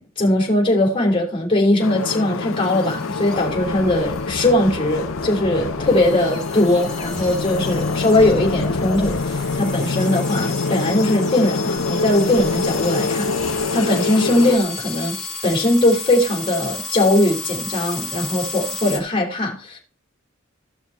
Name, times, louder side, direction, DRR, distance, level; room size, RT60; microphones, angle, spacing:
voice 1, 0.0-19.8, left 1 dB, 25° left, 3.5 m, -20 dB
sound 1, 1.8-14.6, left 4 dB, 70° left, 0.6 m, -25 dB
sound 2, 2.5-19.0, left 3 dB, 5° left, 4.1 m, -33 dB
15.5 x 5.9 x 4.4 m
head